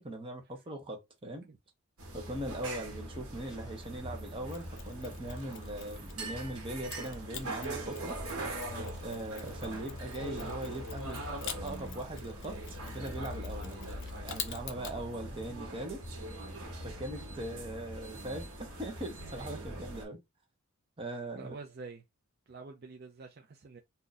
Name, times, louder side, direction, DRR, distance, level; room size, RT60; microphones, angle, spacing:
voice 1, 0.0-1.5 2.1-8.2 9.0-13.8 14.2-16.1 16.8-20.2 21.0-21.6, right 1 dB, 25° right, 0.9 m, -40 dB
sound 1, 2.0-20.0, right 1 dB, 70° right, 1.3 m, -41 dB
sound 2, 2.8-17.3, equal, 5° right, 1.2 m, -57 dB
Mechanisms, 4.5-6.4 6.9-15.0, left 8 dB, 55° left, 0.6 m, -47 dB
voice 2, 21.4-22.0 22.5-23.8, right 4 dB, 45° right, 0.5 m, -47 dB
2.7 x 2.4 x 4.0 m
head